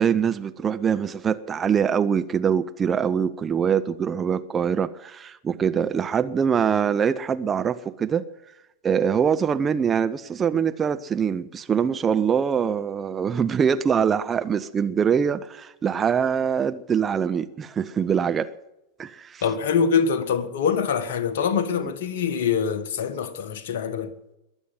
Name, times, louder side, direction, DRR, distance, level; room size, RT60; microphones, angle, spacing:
voice 1, 0.0-8.3 8.8-18.5 19.0-19.4 21.8-21.9, right 7 dB, 20° right, 0.7 m, -23 dB
voice 2, 19.4-24.1, left 6 dB, 55° left, 1.5 m, -24 dB
22.0 x 8.2 x 7.6 m
figure-of-eight pair, 90°, 0 cm